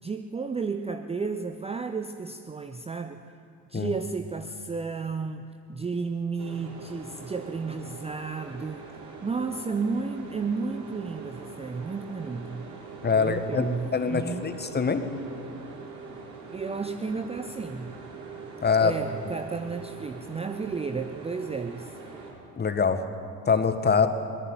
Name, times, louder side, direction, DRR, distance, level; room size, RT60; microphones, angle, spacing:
voice 1, 0.0-3.2 3.7-5.4 5.7-8.9 9.2-12.7 13.1-14.5 16.5-18.0 18.8-22.0, right 4 dB, 10° right, 8 dB, 0.8 m, -32 dB
sound 1, 6.4-22.3, right 4 dB, 40° right, 6.9 m, -43 dB
voice 2, 13.0-15.0 18.6-18.9 22.6-23.0 23.5-24.1, left 5 dB, 20° left, 9 dB, 1.7 m, -24 dB
22.0 x 20.0 x 9.2 m, 2.4 s
figure-of-eight pair, 60°, 48 cm